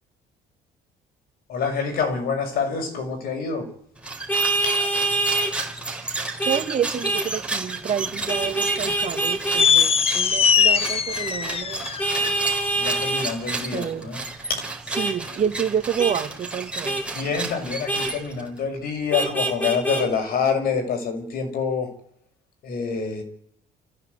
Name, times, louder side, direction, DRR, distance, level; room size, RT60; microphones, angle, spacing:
voice 1, 1.5-3.7 12.6-14.2 14.5-14.6 17.1-21.9 22.6-23.2, left 5 dB, 60° left, 6.1 m, -26 dB
sound 1, 4.0-18.6, right 3 dB, 5° right, 4.5 m, -33 dB
Vehicle horn car horn honking, 4.3-5.5 6.4-6.6 7.0-7.3 8.3-9.7 12.0-13.3 14.9-15.1 16.0-16.2 16.8-17.0 17.9-18.1 19.1-20.0, right 2 dB, 10° left, 4.5 m, -24 dB
voice 2, 6.0-11.9 12.2-12.4 13.7-14.1 14.4-14.5 15.0-17.0, right 8 dB, 45° right, 2.0 m, -28 dB
sound 2, 9.6-12.3, left 7 dB, 35° left, 0.8 m, -20 dB
29.5 x 15.0 x 8.1 m
cardioid pair, 110°, 17 cm